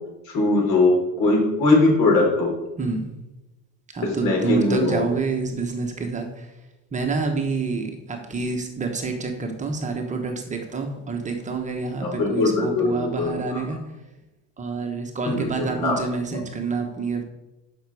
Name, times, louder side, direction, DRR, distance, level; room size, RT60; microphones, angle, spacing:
voice 1, 0.3-2.5 4.2-5.0 12.0-13.6 15.2-16.0, left 2 dB, 65° left, 0 dB, 4.1 m, -21 dB
voice 2, 2.8-3.1 3.9-6.6 6.9-14.0 14.6-17.2, right 4 dB, 20° right, 4 dB, 1.1 m, -28 dB
11.5 x 6.1 x 4.8 m, 0.99 s
cardioid pair, 135°, 33 cm